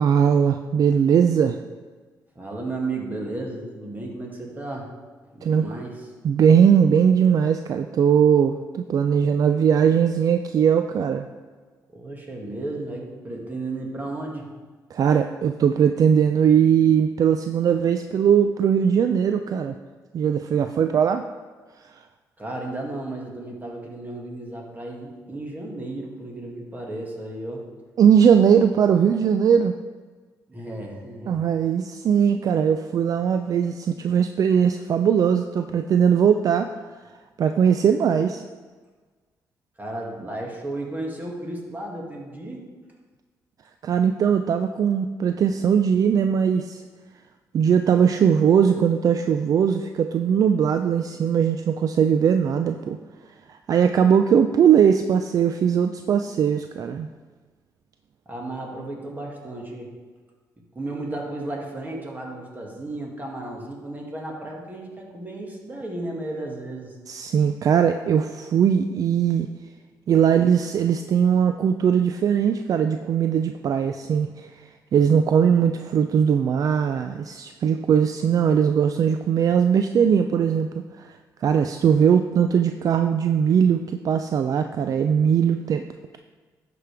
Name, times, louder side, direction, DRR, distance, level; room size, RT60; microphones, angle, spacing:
voice 1, 0.0-1.6 5.4-5.7 6.2-11.3 14.9-19.7 20.1-21.2 28.0-29.7 31.3-36.7 37.4-38.4 43.8-46.8 47.5-53.0 53.5-57.1 67.1-69.5 70.1-74.3 74.9-80.7 81.0-81.1 81.4-85.8, right 7 dB, 55° right, 7 dB, 0.3 m, -20 dB
voice 2, 2.4-4.9 5.3-6.1 11.9-14.5 22.4-27.6 30.5-31.4 39.8-42.7 58.3-59.9 60.8-66.9, right 2 dB, 25° right, -1 dB, 2.0 m, -34 dB
12.0 x 5.0 x 3.5 m, 1.4 s
cardioid pair, 80°, 7 cm